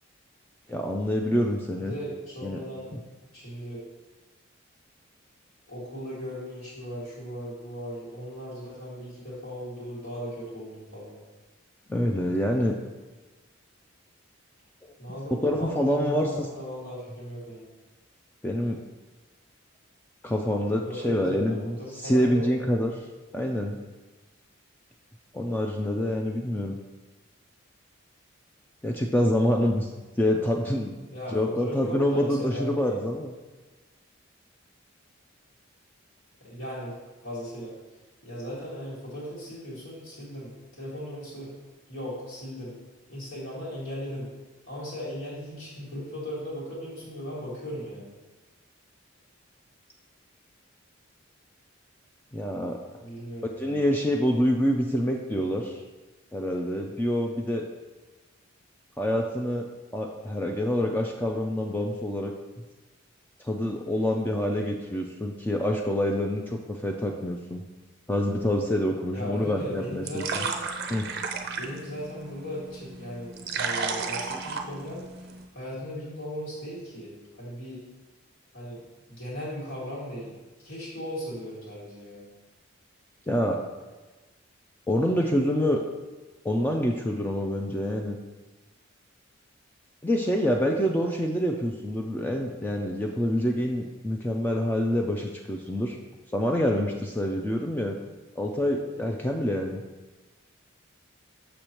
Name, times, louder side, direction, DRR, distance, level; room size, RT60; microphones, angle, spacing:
voice 1, 0.7-1.9 2.4-2.6 11.9-12.7 15.4-16.3 18.4-18.8 20.2-22.9 23.3-23.7 25.3-26.8 28.8-29.9 30.2-30.9 31.3-33.3 52.3-52.8 53.6-55.8 56.3-57.6 59.0-59.6 59.9-62.3 63.4-67.6 68.1-70.4 70.9-71.1 83.3-83.6 84.9-85.8 86.4-88.2 90.0-96.0 96.3-98.0 98.4-99.8, equal, 10° left, 1 dB, 0.3 m, -26 dB
voice 2, 1.9-2.9 3.3-3.8 5.7-11.2 15.0-17.7 20.8-22.5 31.1-33.0 36.4-36.9 37.2-37.7 38.2-41.5 41.9-42.7 43.1-44.3 44.7-48.1 53.0-54.0 69.1-70.5 71.6-75.3 75.5-77.8 78.5-78.8 79.1-80.4 80.6-82.3, equal, 75° left, -10 dB, 2.0 m, -37 dB
sound 1, 69.5-75.5, right 5 dB, 50° right, 0.5 m, -34 dB
6.6 x 6.2 x 2.9 m, 1.2 s
head